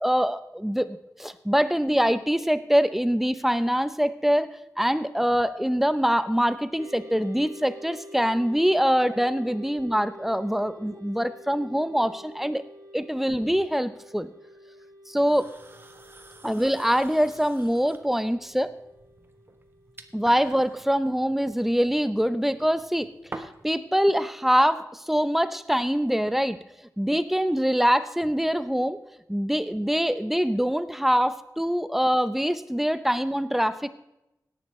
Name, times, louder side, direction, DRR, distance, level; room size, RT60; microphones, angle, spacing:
voice 1, 0.0-4.5 4.8-12.6 12.9-14.3 15.1-15.5 16.4-18.7 20.1-26.6 27.0-29.0 29.3-33.9, equal, 5° right, 13 dB, 0.6 m, -24 dB
sound 1, 6.8-20.7, equal, 50° right, 1.5 m, -48 dB
sound 2, 15.2-23.8, right 2 dB, 30° right, 1.1 m, -47 dB
17.5 x 11.0 x 3.2 m, 0.88 s
wide cardioid pair, 95°, 7 cm